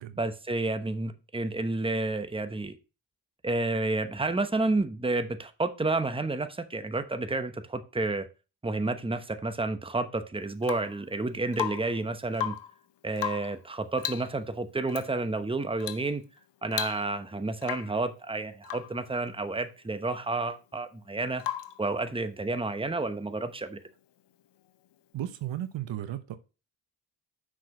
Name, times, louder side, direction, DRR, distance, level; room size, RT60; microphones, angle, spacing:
voice 1, 0.2-2.8 3.4-8.3 8.6-12.6 13.0-16.2 16.6-21.4 21.8-23.8, right 2 dB, 10° right, 1.0 m, -30 dB
Rain / Water tap faucet / Drip, 10.6-11.0 11.5-12.0 12.3-12.8 13.2-13.6 14.0-14.3 14.9-15.1 15.8-16.1 16.4-16.5 16.7-17.3 17.6-18.0 18.6-19.0 21.4-21.8 23.7-23.8, left 11 dB, 65° left, 0.8 m, -35 dB
voice 2, 25.1-26.4, right 12 dB, 75° right, 0.9 m, -35 dB
6.0 x 5.0 x 5.9 m
supercardioid pair, 55°, 45 cm